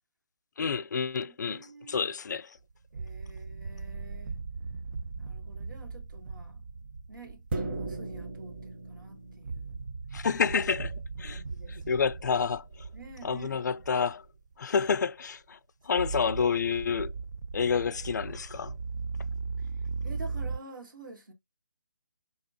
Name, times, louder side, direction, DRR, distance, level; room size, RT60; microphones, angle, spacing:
voice 1, 0.6-2.6 10.1-11.4 11.7-12.9 13.2-14.2 14.6-15.6 15.8-17.1 17.5-18.8, left 6 dB, 60° left, 0.4 m, -29 dB
voice 2, 1.3-2.1 2.9-4.4 5.2-6.6 7.1-9.8 11.2-11.9 12.9-13.7 15.9-16.3 20.0-21.3, right 3 dB, 85° right, 1.8 m, -49 dB
sound 1, 2.7-8.9 9.3-14.5 14.8-15.0 15.9-20.6, right 4 dB, 65° right, 0.4 m, -38 dB
sound 2, 3.5-3.8 7.5-9.8, right 2 dB, 35° right, 0.8 m, -37 dB
5.1 x 2.9 x 2.7 m
hypercardioid pair, 165°, 11 cm